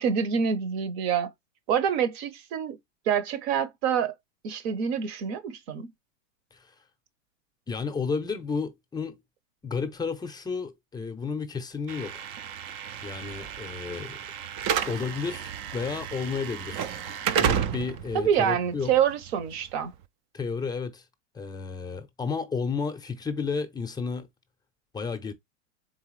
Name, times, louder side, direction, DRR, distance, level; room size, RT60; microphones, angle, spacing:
voice 1, 0.0-1.3 1.7-2.8 3.1-4.1 4.4-5.9 18.1-19.9, right 8 dB, 55° right, 0.9 m, -26 dB
voice 2, 7.7-9.2 9.6-12.3 13.0-14.2 14.9-16.9 17.4-18.9 20.3-21.0 21.3-24.3 24.9-25.3, left 5 dB, 10° left, 0.6 m, -32 dB
Slam / Alarm, 11.9-20.0, right 8 dB, 40° right, 0.4 m, -32 dB
4.0 x 3.4 x 3.1 m
hypercardioid pair, 110°, 38 cm